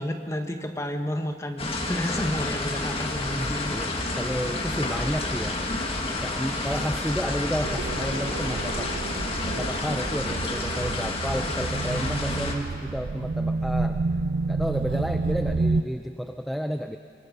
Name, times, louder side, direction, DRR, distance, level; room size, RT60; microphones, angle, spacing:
voice 1, 0.0-3.8, left 1 dB, 15° left, 5 dB, 1.3 m, -31 dB
sound 1, 1.6-12.5, left 2 dB, 35° left, 2.1 m, -30 dB
voice 2, 3.3-5.6 6.2-8.9 9.4-14.0 14.5-17.0, equal, ahead, 6 dB, 0.5 m, -31 dB
sound 2, 7.6-15.8, right 3 dB, 75° right, 0.5 m, -29 dB
26.0 x 23.0 x 5.4 m, 2.3 s
head